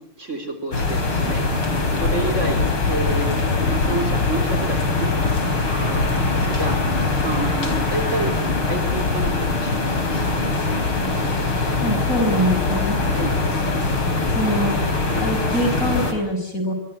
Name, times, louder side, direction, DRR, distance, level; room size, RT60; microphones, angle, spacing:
voice 1, 0.0-1.4 1.9-5.1 5.8-6.8 7.2-8.4 8.6-10.4 13.1-13.4, right 2 dB, 35° right, 6 dB, 4.2 m, -30 dB
sound 1, 0.7-16.1, left 3 dB, 85° left, 5.1 m, -22 dB
voice 2, 11.8-13.0 14.3-14.8 15.1-16.7, equal, 40° left, 6 dB, 6.1 m, -23 dB
26.0 x 22.5 x 8.3 m, 0.66 s
omnidirectional pair, 2.3 m